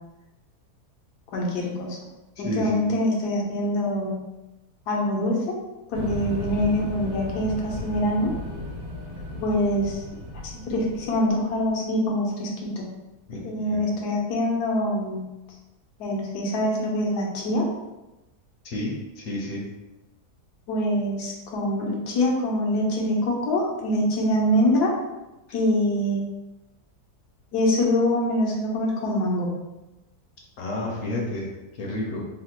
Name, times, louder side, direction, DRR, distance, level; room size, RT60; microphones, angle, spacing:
voice 1, 1.3-2.0 2.4-4.2 4.9-5.6 5.9-8.3 9.4-10.0 10.7-12.9 13.4-15.3 16.0-17.7 20.7-24.9 25.5-26.2 27.5-29.5, left 1 dB, 85° left, -2 dB, 1.3 m, -24 dB
voice 2, 2.4-2.8 13.3-13.8 18.6-19.7 30.6-32.3, left 1 dB, 65° left, -2 dB, 0.9 m, -31 dB
sound 1, 5.9-11.7, left 1 dB, 65° right, 1.2 m, -35 dB
3.3 x 2.1 x 2.8 m, 1.0 s
omnidirectional pair, 1.7 m